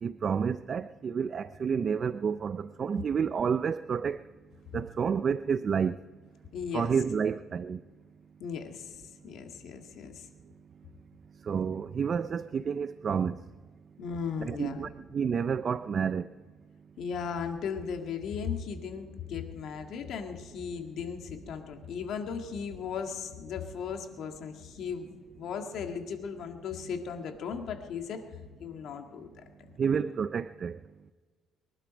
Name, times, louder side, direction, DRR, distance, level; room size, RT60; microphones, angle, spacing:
voice 1, 0.0-4.2 4.7-6.0 6.7-7.8 11.4-13.4 14.4-16.3 29.8-30.8, right 6 dB, 35° right, 14 dB, 0.4 m, -30 dB
voice 2, 6.5-6.9 8.4-10.3 14.0-14.9 17.0-28.2 28.6-29.3, left 6 dB, 60° left, 5 dB, 1.9 m, -37 dB
22.5 x 12.0 x 5.2 m, 1.4 s
cardioid pair, 135°, 0 cm